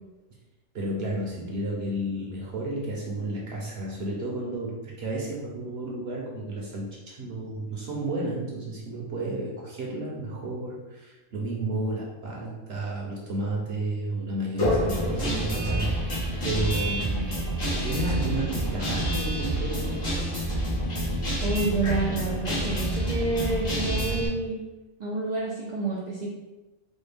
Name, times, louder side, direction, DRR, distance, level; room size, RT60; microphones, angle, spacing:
voice 1, 0.7-17.3 17.7-20.0 20.8-20.9, right 1 dB, 55° right, -3 dB, 0.8 m, -32 dB
Guitar, 14.6-24.3, right 1 dB, 85° left, 1.8 m, -28 dB
voice 2, 21.4-24.6 25.0-26.3, right 2 dB, 75° right, -5 dB, 0.4 m, -29 dB
4.2 x 2.1 x 3.3 m, 1.1 s
omnidirectional pair, 1.4 m